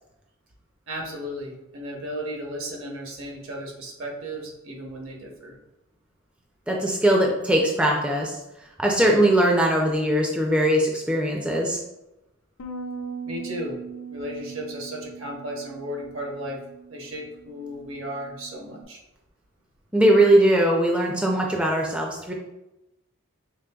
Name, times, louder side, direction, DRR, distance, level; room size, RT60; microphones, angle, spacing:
voice 1, 0.9-5.5 13.2-13.8 14.1-16.6 16.9-19.0, equal, 70° right, 0 dB, 0.9 m, -35 dB
voice 2, 6.7-8.4 8.8-11.8 19.9-22.3, right 1 dB, 5° right, 0 dB, 0.3 m, -20 dB
Bass guitar, 12.6-18.8, right 5 dB, 75° left, 0.5 m, -40 dB
5.1 x 3.0 x 2.3 m, 0.95 s
head